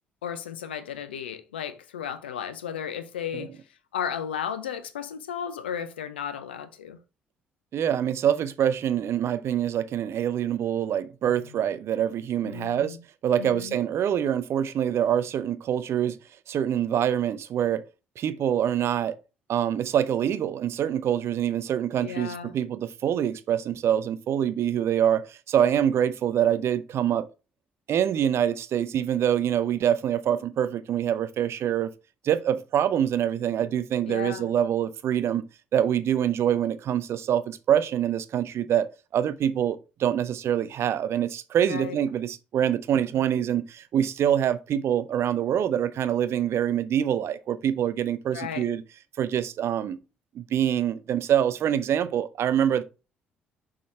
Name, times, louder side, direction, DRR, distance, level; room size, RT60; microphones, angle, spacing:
voice 1, 0.2-3.6 3.9-7.0 11.3-11.6 12.4-13.0 13.4-13.8 22.0-22.5 34.1-34.5 41.7-42.0 48.3-48.7, left 8 dB, 80° left, 0.6 m, -34 dB
voice 2, 7.7-13.0 13.2-16.2 16.5-17.8 18.2-19.2 19.5-27.3 27.9-31.9 32.2-35.4 35.7-48.8 49.2-50.0 50.3-52.8, right 9 dB, 50° right, 0.7 m, -25 dB
6.2 x 3.8 x 4.3 m
figure-of-eight pair, 50°, 6 cm